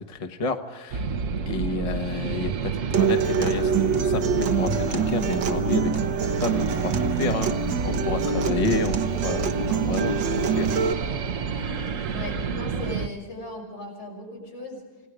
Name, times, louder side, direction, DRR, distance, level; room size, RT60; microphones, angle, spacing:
voice 1, 0.1-1.1 1.5-7.5 7.8-10.8, left 3 dB, 25° left, 6 dB, 1.0 m, -30 dB
sound 1, 0.9-13.1, right 5 dB, 50° right, 1.1 m, -29 dB
voice 2, 1.5-1.8 8.2-8.5 11.9-14.8, left 2 dB, 85° left, -1 dB, 6.8 m, -38 dB
Acoustic guitar, 2.9-10.9, right 6 dB, 75° right, 1.9 m, -26 dB
28.5 x 18.0 x 5.0 m, 1.3 s
omnidirectional pair, 2.0 m